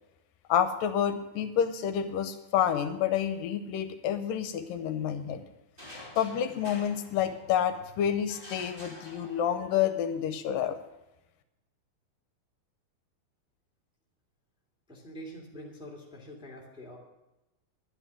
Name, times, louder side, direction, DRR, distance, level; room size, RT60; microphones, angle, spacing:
voice 1, 0.5-5.4 6.2-10.8, left 9 dB, 75° left, 9 dB, 2.4 m, -29 dB
sound 1, 5.8-7.8 8.3-9.8, left 1 dB, 20° right, 2.1 m, -48 dB
voice 2, 14.9-17.0, equal, ahead, -3 dB, 2.1 m, -45 dB
11.5 x 10.5 x 6.0 m, 0.98 s
omnidirectional pair, 4.1 m